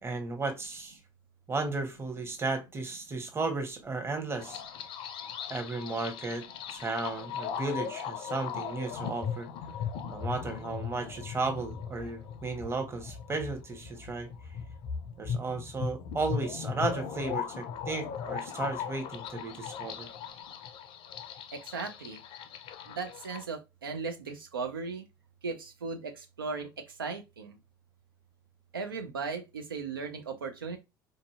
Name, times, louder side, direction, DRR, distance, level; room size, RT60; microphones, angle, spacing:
voice 1, 0.0-1.0 1.5-4.6 5.5-9.5 10.1-14.3 15.2-20.1, right 3 dB, 20° right, 0.9 m, -34 dB
sound 1, 4.4-23.4, left 7 dB, 45° left, 0.5 m, -38 dB
voice 2, 21.5-22.2 22.9-25.1 25.4-27.6 28.7-30.8, right 4 dB, 80° right, 0.4 m, -37 dB
3.9 x 2.5 x 2.4 m
figure-of-eight pair, 60°, 12 cm